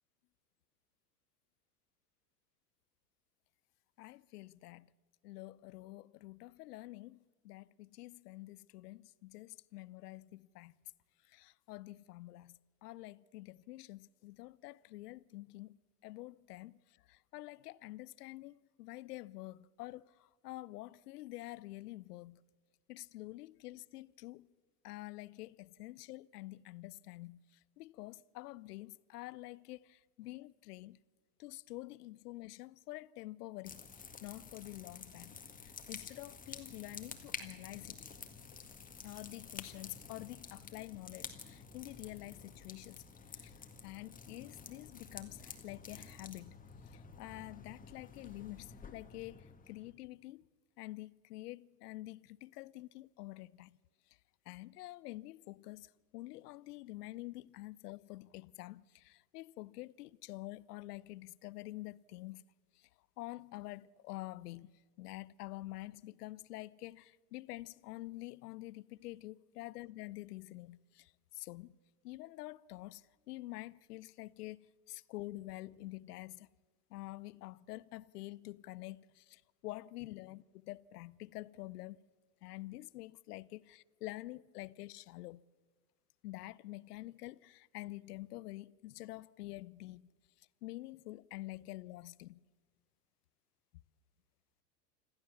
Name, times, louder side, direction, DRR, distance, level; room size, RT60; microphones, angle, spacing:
voice 1, 4.0-4.9 5.2-10.7 11.3-15.8 16.0-16.8 17.1-22.4 22.9-24.5 24.8-27.4 27.8-31.0 31.4-38.0 39.0-43.0 43.3-43.5 43.8-46.6 46.9-50.5 50.8-53.8 54.5-62.4 63.2-71.1 71.4-71.8 72.0-76.5 76.9-82.0 82.4-85.4 86.2-90.1 90.6-92.4, left 18 dB, 65° left, 0.7 m, -48 dB
sound 1, 33.6-49.9, left 5 dB, 15° left, 1.8 m, -50 dB
26.0 x 14.5 x 7.1 m
hypercardioid pair, 95°, 50 cm